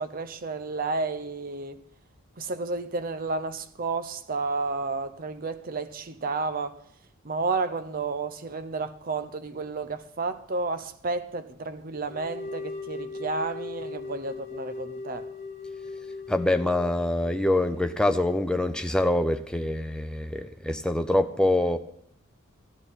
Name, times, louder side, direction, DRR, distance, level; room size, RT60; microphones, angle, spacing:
voice 1, 0.0-1.8 2.4-6.8 7.2-15.3, right 3 dB, 45° right, 0.7 m, -31 dB
sound 1, 12.1-18.9, left 3 dB, 35° left, 2.4 m, -39 dB
voice 2, 16.3-21.8, left 1 dB, 5° left, 0.6 m, -25 dB
14.0 x 11.0 x 4.2 m
head